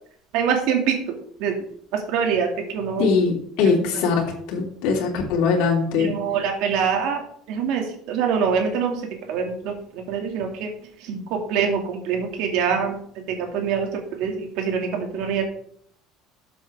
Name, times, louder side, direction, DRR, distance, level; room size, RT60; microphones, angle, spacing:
voice 1, 0.3-1.5 2.1-2.5 2.7-3.1 6.0-7.2 7.5-9.0 9.3-9.7 10.1-10.7 11.1-13.0 13.4-15.4, right 6 dB, 60° right, 3 dB, 2.4 m, -24 dB
voice 2, 3.0-6.1, left 5 dB, 65° left, -1 dB, 2.9 m, -21 dB
12.5 x 7.7 x 3.7 m, 0.63 s
cardioid pair, 170°, 0 cm